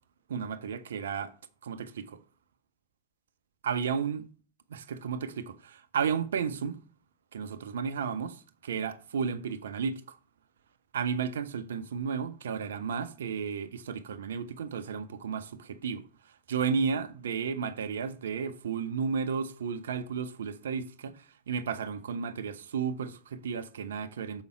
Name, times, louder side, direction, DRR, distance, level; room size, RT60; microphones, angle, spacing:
voice 1, 0.3-1.3 1.6-2.2 3.6-4.3 4.7-6.8 7.3-8.3 8.6-10.2 10.9-24.4, right 6 dB, 65° right, 0.6 m, -33 dB
7.2 x 5.4 x 4.4 m
figure-of-eight pair, 90°, 0 cm